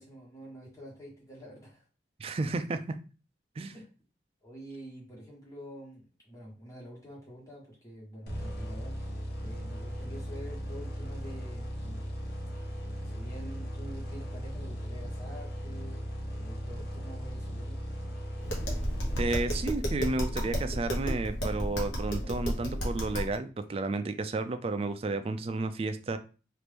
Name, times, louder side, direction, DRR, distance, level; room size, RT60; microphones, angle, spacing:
voice 1, 0.0-1.8 3.7-3.9 4.4-9.1 9.4-12.1 13.1-16.0 16.3-17.8, equal, 15° left, -4 dB, 1.4 m, -47 dB
voice 2, 2.2-3.0 3.6-3.8 19.2-26.2, right 3 dB, 30° right, 10 dB, 0.3 m, -32 dB
sound 1, 8.3-19.9, equal, 60° left, 0.8 m, -38 dB
Tap, 18.4-23.4, equal, 85° left, 1.1 m, -32 dB
3.0 x 2.5 x 3.4 m, 0.34 s
head